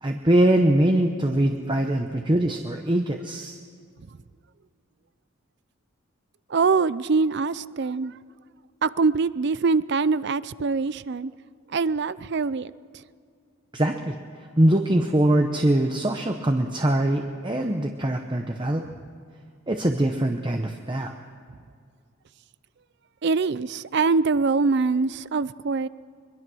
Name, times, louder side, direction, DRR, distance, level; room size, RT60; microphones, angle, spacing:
voice 1, 0.0-3.6 13.7-14.2 14.6-18.8 19.7-21.1, right 1 dB, 20° right, 4 dB, 0.8 m, -22 dB
voice 2, 6.5-8.2 8.8-11.3 11.7-12.7 23.2-25.9, right 4 dB, 50° right, 17 dB, 0.5 m, -23 dB
22.5 x 22.5 x 6.3 m, 2.2 s
head